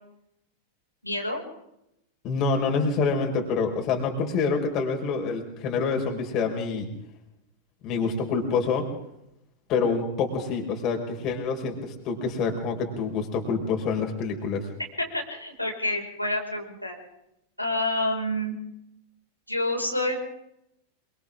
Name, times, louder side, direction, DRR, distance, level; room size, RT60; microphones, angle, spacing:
voice 1, 1.0-1.4 15.0-16.9 17.6-18.5 19.5-20.2, left 1 dB, 90° left, -1 dB, 5.6 m, -28 dB
voice 2, 2.2-6.9 7.8-8.9 9.7-14.7, left 4 dB, 35° left, 2 dB, 5.2 m, -27 dB
27.0 x 25.5 x 3.8 m, 0.81 s
figure-of-eight pair, 90°, 0 cm